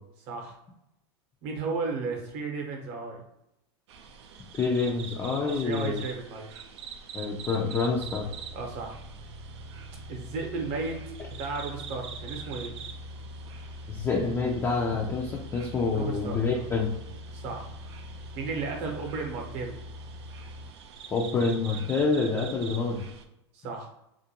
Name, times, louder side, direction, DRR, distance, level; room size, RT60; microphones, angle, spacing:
voice 1, 1.4-3.2 5.4-6.6 8.5-9.0 10.1-11.0 11.4-12.7 15.8-16.6 17.3-17.7 18.4-19.7 23.5-23.9, right 4 dB, 50° right, 2 dB, 0.8 m, -34 dB
sound 1, 3.9-23.2, right 7 dB, 80° right, 0.4 m, -46 dB
voice 2, 4.6-6.0 7.1-8.3 13.9-16.9 21.1-23.0, left 4 dB, 20° left, -2 dB, 0.4 m, -27 dB
sound 2, 7.8-20.7, left 1 dB, 60° left, 0.9 m, -43 dB
2.4 x 2.1 x 2.8 m, 0.84 s
hypercardioid pair, 115°, 14 cm